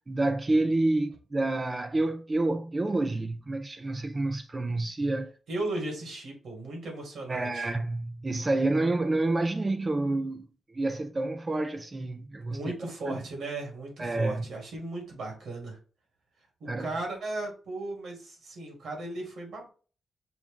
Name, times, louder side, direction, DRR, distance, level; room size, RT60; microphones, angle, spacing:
voice 1, 0.1-5.3 7.3-10.5 10.7-12.7 13.1-13.2 14.0-14.4 16.7-16.9, right 2 dB, 25° right, 0.4 m, -28 dB
voice 2, 5.5-7.7 12.5-15.8 16.6-19.7, right 2 dB, 75° right, 2.2 m, -36 dB
6.1 x 2.4 x 3.6 m
cardioid pair, 90°, 0 cm